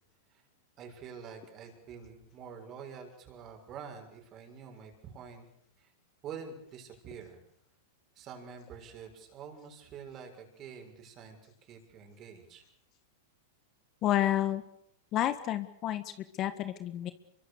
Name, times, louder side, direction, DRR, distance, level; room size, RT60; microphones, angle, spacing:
voice 1, 0.8-5.5 5.8-5.9 6.2-7.4 8.2-12.6, right 6 dB, 35° right, 4 dB, 6.9 m, -47 dB
voice 2, 14.0-14.6 15.1-17.1, left 12 dB, 35° left, 11 dB, 1.7 m, -30 dB
26.0 x 23.5 x 6.9 m, 0.71 s
hypercardioid pair, 130°, 0 cm